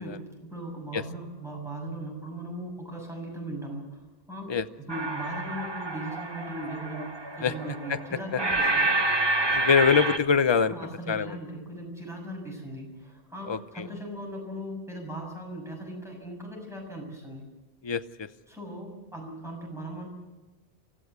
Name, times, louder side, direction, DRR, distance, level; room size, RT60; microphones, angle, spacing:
voice 1, 0.0-3.9 4.3-8.9 10.7-17.4 18.5-20.1, right 1 dB, ahead, 0 dB, 6.7 m, -38 dB
sound 1, 4.9-10.2, right 2 dB, 25° right, 1.2 m, -28 dB
voice 2, 9.5-10.7 11.1-11.3 13.5-13.6 17.8-18.3, left 6 dB, 30° left, 12 dB, 0.6 m, -23 dB
25.0 x 15.5 x 8.2 m, 1.1 s
omnidirectional pair, 1.1 m